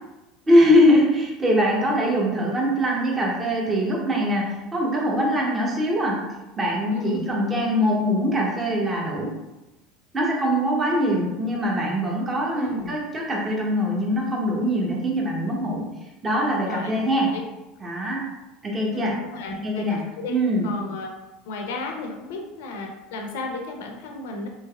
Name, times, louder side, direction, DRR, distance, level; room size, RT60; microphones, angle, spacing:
voice 1, 0.5-9.4 10.1-15.9 16.2-17.4 17.8-18.3 18.6-19.2 19.5-20.0 20.3-20.7, equal, 25° right, -2 dB, 0.8 m, -22 dB
voice 2, 6.9-7.3 12.5-13.0 16.7-17.0 17.3-17.4 18.9-20.3 20.6-21.1 21.5-24.5, left 2 dB, 75° left, 2 dB, 0.6 m, -33 dB
3.2 x 3.1 x 2.3 m, 1.0 s
hypercardioid pair, 80°, 0 cm